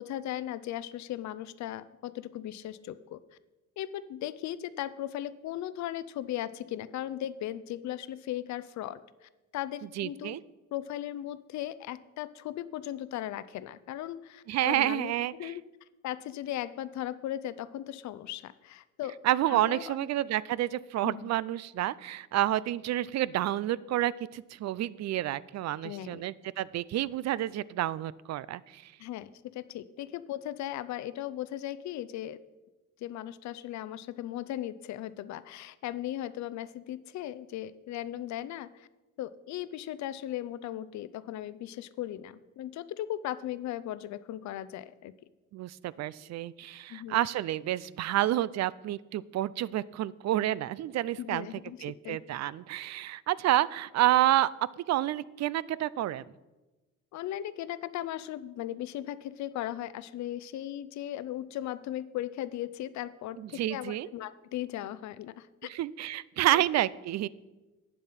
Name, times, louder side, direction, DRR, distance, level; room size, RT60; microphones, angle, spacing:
voice 1, 0.0-3.2 3.8-10.4 10.7-15.6 16.0-19.2 19.5-20.1 21.0-21.3 25.8-26.2 29.0-32.4 33.0-38.9 39.2-45.1 46.9-47.3 51.2-51.8 52.0-52.2 57.1-65.7 66.5-66.6, left 12 dB, 65° left, 15 dB, 0.5 m, -37 dB
voice 2, 10.0-10.4 14.5-15.5 19.2-28.9 45.5-51.5 51.8-54.5 54.8-56.2 63.4-64.1 65.7-67.3, right 14 dB, 60° right, 20 dB, 0.4 m, -29 dB
9.2 x 7.5 x 5.7 m, 1.1 s
cardioid pair, 90°, 30 cm